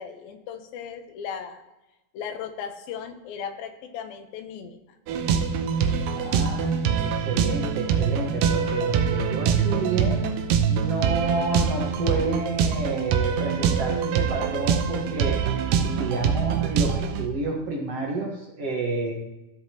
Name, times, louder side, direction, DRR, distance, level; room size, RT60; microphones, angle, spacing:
voice 1, 0.0-1.6 2.1-4.8, left 7 dB, 85° left, 7 dB, 2.7 m, -36 dB
sound 1, 5.1-17.3, right 7 dB, 80° right, 2.3 m, -24 dB
voice 2, 6.2-10.2 10.7-15.4 15.8-19.1, right 3 dB, 55° right, -1 dB, 2.0 m, -29 dB
14.0 x 7.9 x 2.9 m, 0.98 s
omnidirectional pair, 4.1 m